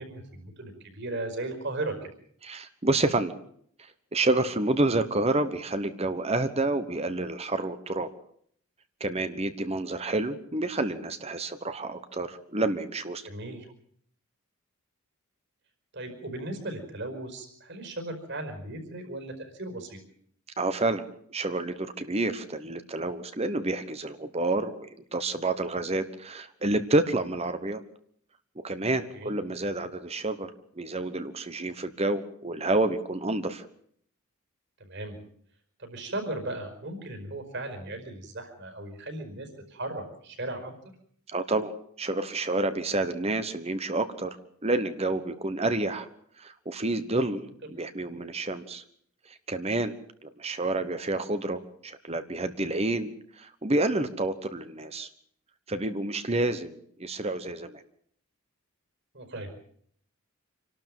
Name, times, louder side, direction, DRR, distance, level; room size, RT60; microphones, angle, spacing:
voice 1, 0.0-2.1 13.2-13.7 15.9-20.0 29.1-29.3 34.8-35.2 35.8-40.7 59.1-59.5, right 2 dB, 55° right, 6 dB, 5.1 m, -36 dB
voice 2, 2.4-3.3 3.8-8.1 9.0-13.3 20.6-21.0 21.3-27.8 28.6-33.7 41.3-44.4 44.6-46.1 46.4-48.8 49.3-49.9 50.2-55.1 55.7-57.8, right 2 dB, 30° right, 11 dB, 1.2 m, -29 dB
26.5 x 12.5 x 9.1 m, 0.64 s
head